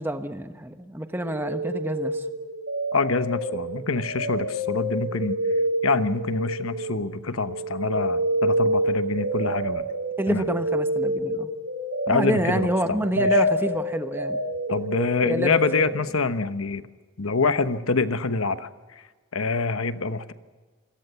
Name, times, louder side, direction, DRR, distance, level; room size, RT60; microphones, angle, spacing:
voice 1, 0.0-2.2 10.2-11.5 12.1-14.4 15.2-15.6, right 1 dB, 10° right, 8 dB, 1.1 m, -28 dB
sound 1, 1.2-7.2 7.4-16.0, right 1 dB, 70° right, 4.7 m, -27 dB
voice 2, 2.9-5.4 5.8-9.8 10.3-10.4 12.1-13.4 14.7-16.8 17.2-18.7 19.3-20.3, left 3 dB, 85° left, 10 dB, 1.2 m, -26 dB
26.5 x 18.0 x 7.0 m, 1.4 s
head